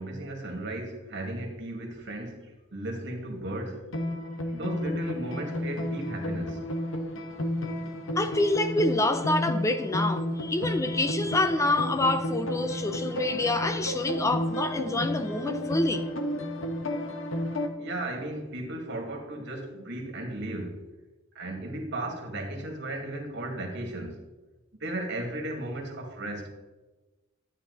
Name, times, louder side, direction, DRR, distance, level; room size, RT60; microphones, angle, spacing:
voice 1, 0.0-3.9 4.5-6.6 10.6-11.4 12.0-15.8 17.8-20.8 21.3-24.2 24.8-26.5, right 1 dB, 60° right, 2.2 m, -36 dB
sound 1, 3.9-17.7, left 1 dB, 70° left, 1.3 m, -32 dB
voice 2, 8.2-16.0, left 2 dB, 15° left, 0.4 m, -27 dB
13.0 x 8.8 x 4.1 m
head